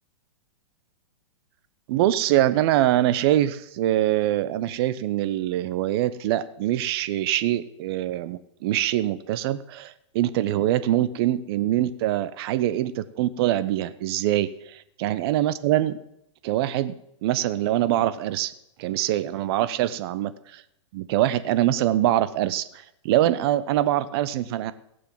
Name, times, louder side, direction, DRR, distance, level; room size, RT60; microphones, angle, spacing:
voice 1, 1.9-16.0 16.4-17.0 17.2-18.5 18.8-20.6 20.9-22.6 23.0-24.7, right 13 dB, 50° right, 14 dB, 1.0 m, -24 dB
17.0 x 6.9 x 7.4 m, 0.79 s
hypercardioid pair, 120°, 16 cm